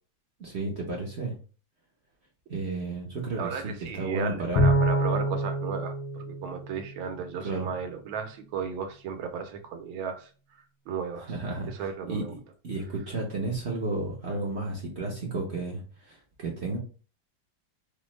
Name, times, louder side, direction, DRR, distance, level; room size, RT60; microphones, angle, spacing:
voice 1, 0.4-1.3 2.5-4.7 7.4-7.7 11.3-12.4 12.6-16.8, right 2 dB, 60° right, -2 dB, 0.6 m, -32 dB
voice 2, 3.4-10.3 10.9-11.3 11.7-12.3, right 6 dB, 85° right, 5 dB, 1.5 m, -35 dB
Bowed string instrument, 4.6-7.2, right 1 dB, 85° left, 1.6 m, -26 dB
4.9 x 2.1 x 3.1 m, 0.37 s
omnidirectional pair, 2.2 m